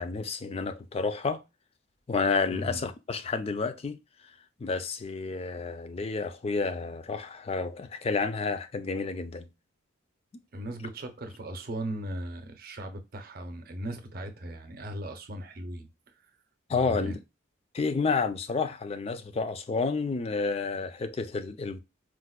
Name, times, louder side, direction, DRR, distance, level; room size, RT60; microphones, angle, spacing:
voice 1, 0.0-1.4 2.1-4.0 4.6-9.5 16.7-17.2 17.7-21.8, left 4 dB, 30° left, 0.3 m, -30 dB
voice 2, 2.5-2.8 10.5-15.9 16.7-17.2, right 1 dB, 50° right, 0.6 m, -37 dB
4.5 x 2.1 x 2.3 m
head